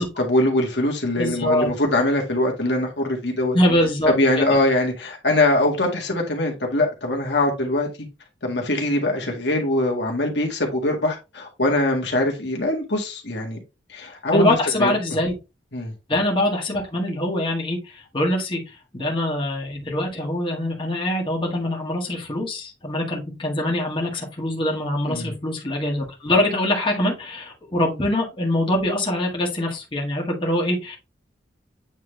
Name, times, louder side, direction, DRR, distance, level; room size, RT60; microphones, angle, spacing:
voice 1, 0.2-3.6 4.2-7.9 8.4-13.6 13.9-14.9 15.7-15.9 25.1-25.3, left 1 dB, 70° left, 1 dB, 1.8 m, -22 dB
voice 2, 1.2-1.7 3.5-4.6 14.3-15.3 16.1-18.6 18.9-31.0, left 1 dB, 30° left, -1 dB, 1.9 m, -23 dB
8.6 x 3.6 x 3.3 m, 0.27 s
head